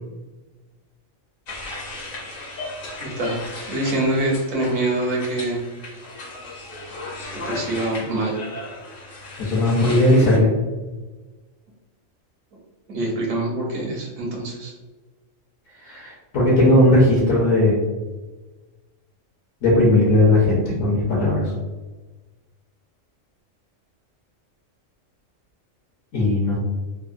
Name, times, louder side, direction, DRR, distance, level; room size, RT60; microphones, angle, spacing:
sound 1, 1.5-10.4, left 2 dB, 55° left, 0.7 m, -36 dB
voice 1, 3.0-3.4 3.7-5.6 7.3-8.4 12.9-14.7, right 1 dB, 70° right, -2 dB, 1.1 m, -25 dB
voice 2, 9.4-10.5 15.8-17.8 19.6-21.5 26.1-26.6, left 1 dB, 75° left, -6 dB, 1.1 m, -17 dB
3.5 x 2.0 x 2.5 m, 1.3 s
omnidirectional pair, 1.4 m